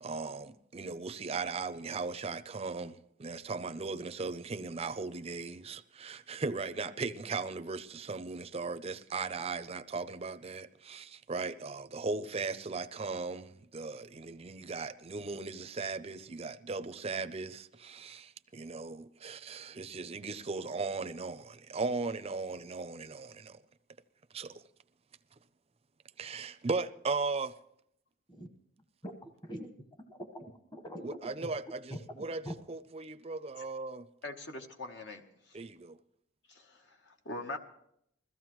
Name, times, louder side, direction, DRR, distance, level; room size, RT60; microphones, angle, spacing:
voice 1, 0.0-2.9 3.2-18.2 18.5-23.5 24.3-24.5 26.2-27.5 31.0-31.9 32.2-32.4 32.7-34.0 35.5-35.9, right 4 dB, 30° right, 0.5 m, -37 dB
voice 2, 29.0-29.7 30.1-31.5 31.9-32.6, equal, 25° left, 1.1 m, -44 dB
voice 3, 34.2-35.6 36.5-37.6, left 2 dB, 65° left, 1.0 m, -43 dB
21.5 x 15.0 x 3.1 m
head